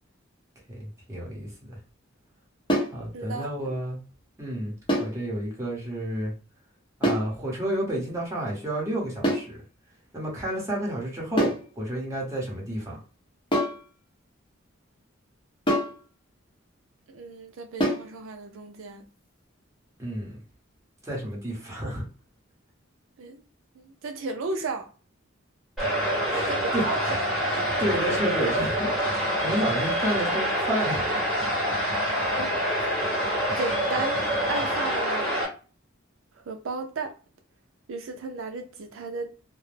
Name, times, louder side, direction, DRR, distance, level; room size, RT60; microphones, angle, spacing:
voice 1, 0.7-1.8 2.9-4.0 4.4-4.7 5.0-6.3 7.0-9.6 10.1-13.0 20.0-20.4 21.0-22.0 26.3-26.9 27.5-31.1, right 1 dB, 15° right, 0.9 m, -30 dB
sound 1, 2.7-3.0 4.9-5.2 7.0-7.3 9.2-9.5 11.4-11.7 13.5-13.8 15.7-16.0 17.8-18.1, equal, 25° left, 0.7 m, -25 dB
voice 2, 3.1-3.7 17.1-19.0 23.2-23.4 23.8-24.9 26.5-27.2 31.6-31.8 32.4-32.9 33.6-35.4 36.5-37.1 37.9-39.3, right 4 dB, 75° right, 0.4 m, -34 dB
sound 2, 25.8-35.4, equal, ahead, 1.1 m, -26 dB
2.2 x 2.0 x 3.1 m
head